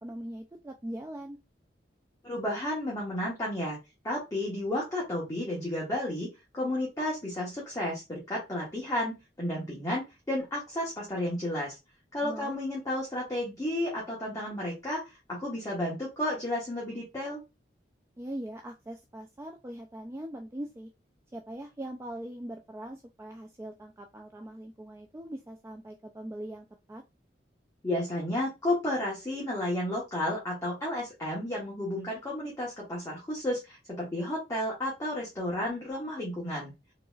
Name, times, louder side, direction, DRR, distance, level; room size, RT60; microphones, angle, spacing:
voice 1, 0.0-1.4 12.2-12.5 18.2-20.9 21.3-27.0, right 1 dB, 15° right, 3 dB, 0.3 m, -41 dB
voice 2, 2.2-3.8 4.0-6.3 6.5-11.8 12.1-17.4 27.8-36.7, left 1 dB, 20° left, -5 dB, 1.1 m, -32 dB
3.9 x 2.9 x 2.3 m, 0.24 s
head